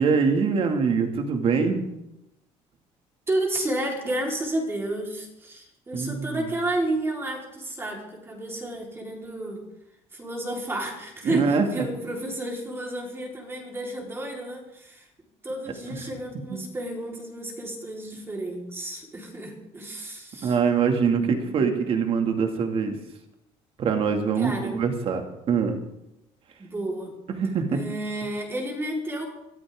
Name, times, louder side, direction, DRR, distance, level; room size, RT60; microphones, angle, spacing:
voice 1, 0.0-1.8 5.9-6.4 11.2-11.8 16.5-16.6 20.4-23.0 23.8-25.2 25.5-25.8 27.3-27.8, right 5 dB, 50° right, 5 dB, 2.4 m, -23 dB
voice 2, 3.3-9.6 10.1-15.1 15.4-20.6 21.2-21.7 24.4-24.8 26.6-27.1 27.7-29.3, right 1 dB, 20° right, 0 dB, 4.2 m, -31 dB
23.0 x 14.0 x 3.8 m, 0.87 s
cardioid pair, 130°, 13 cm